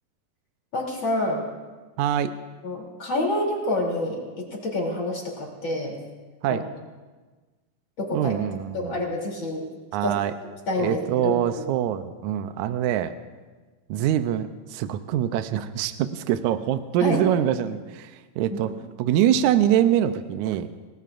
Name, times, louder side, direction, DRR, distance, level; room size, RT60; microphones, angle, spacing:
voice 1, 0.7-1.4 2.6-6.0 6.5-6.6 8.0-8.3 8.7-9.6 10.0-10.2 10.7-11.7 17.0-17.2 18.5-18.6, left 1 dB, 35° left, -2 dB, 3.5 m, -27 dB
voice 2, 2.0-2.3 6.4-6.6 8.1-9.0 9.9-10.3 10.8-13.1 13.9-18.7 19.0-20.7, right 10 dB, 80° right, 9 dB, 1.7 m, -24 dB
29.0 x 19.0 x 2.5 m, 1.3 s
omnidirectional pair, 4.1 m